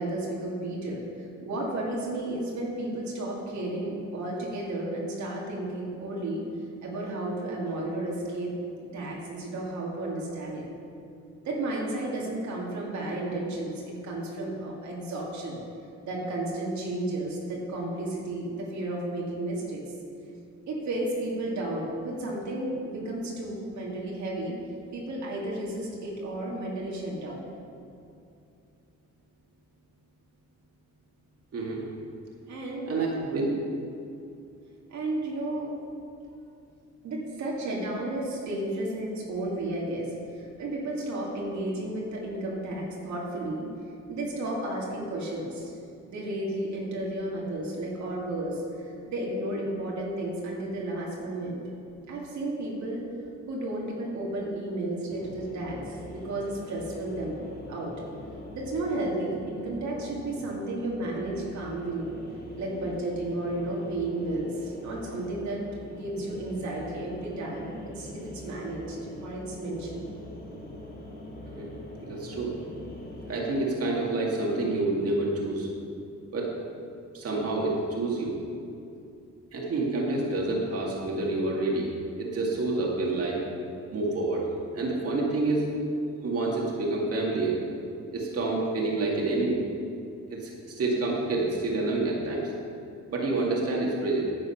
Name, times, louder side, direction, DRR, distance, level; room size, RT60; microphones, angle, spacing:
voice 1, 0.0-6.4 6.8-8.5 8.9-10.7 11.4-15.6 16.0-19.8 20.7-24.6 24.9-27.4 32.5-32.9 34.9-35.7 37.0-43.7 44.1-45.7 46.1-51.6 52.1-53.0 53.5-57.4 57.7-57.9 58.5-62.1 62.6-65.6 65.9-70.1, right 1 dB, 70° right, -3 dB, 2.2 m, -33 dB
voice 2, 31.5-31.8 32.9-33.5 71.6-71.7 72.0-72.5 73.3-75.7 76.3-76.5 77.1-78.4 79.5-81.9 82.2-83.4 83.9-84.4 84.7-85.7 86.2-87.6 88.1-89.6 90.4-92.5 93.1-94.2, right 2 dB, 50° right, -3 dB, 2.2 m, -28 dB
sound 1, 55.1-73.5, left 1 dB, 30° left, 2.0 m, -43 dB
10.0 x 7.7 x 5.8 m, 2.5 s
cardioid pair, 90°, 30 cm